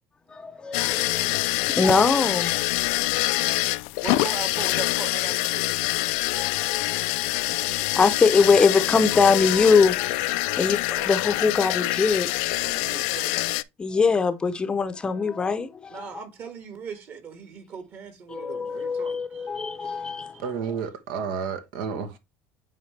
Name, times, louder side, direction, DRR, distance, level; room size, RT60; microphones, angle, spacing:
voice 1, 0.3-2.5 3.3-3.5 6.3-12.3 13.8-16.1 18.3-20.3, left 5 dB, 20° left, 0.6 m, -23 dB
sound 1, 0.7-13.6, left 21 dB, 85° left, 0.4 m, -25 dB
voice 2, 4.0-5.7 10.9-11.1 12.6-13.5 15.9-19.5 19.8-20.4, right 6 dB, 45° right, 1.8 m, -39 dB
voice 3, 20.4-22.2, right 6 dB, 85° right, 1.0 m, -31 dB
8.7 x 3.7 x 3.2 m
cardioid pair, 130°, 5 cm